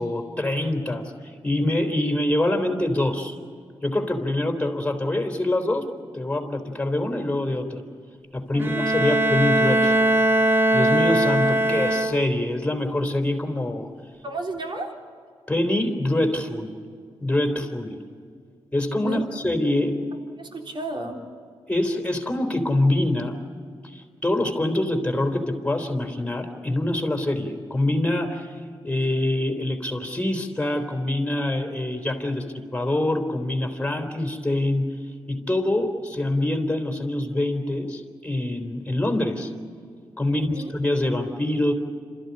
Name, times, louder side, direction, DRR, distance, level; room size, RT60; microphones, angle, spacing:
voice 1, 0.0-3.4 3.8-5.9 6.1-7.8 8.3-10.1 10.7-13.9 15.5-16.8 17.2-18.0 18.7-20.0 21.7-23.3 23.8-28.6 28.8-32.5 32.7-35.0 35.3-39.5 40.2-41.7, left 1 dB, 15° left, 4 dB, 3.9 m, -25 dB
Bowed string instrument, 8.6-12.5, right 1 dB, 20° right, 0.9 m, -21 dB
voice 2, 14.2-15.0 19.0-19.2 20.4-21.2 40.3-40.7, right 2 dB, 55° right, 2 dB, 3.9 m, -32 dB
27.5 x 14.0 x 9.9 m, 2.2 s
cardioid pair, 70°, 10 cm